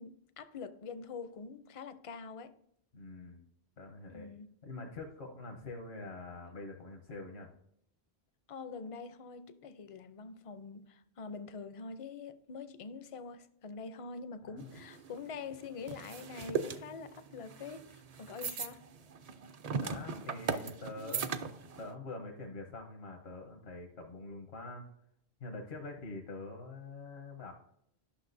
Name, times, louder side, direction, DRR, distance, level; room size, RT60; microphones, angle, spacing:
voice 1, 0.0-2.6 4.1-4.5 8.5-18.8 21.0-21.2, left 5 dB, 45° left, 0.5 m, -45 dB
voice 2, 2.9-3.4 3.8-4.3 4.6-7.5 14.5-14.8 19.8-21.3 21.8-24.9 25.4-27.5, left 2 dB, 75° left, 1.2 m, -45 dB
sound 1, 14.6-21.9, right 5 dB, 50° right, 0.5 m, -39 dB
11.5 x 6.1 x 2.6 m
omnidirectional pair, 1.1 m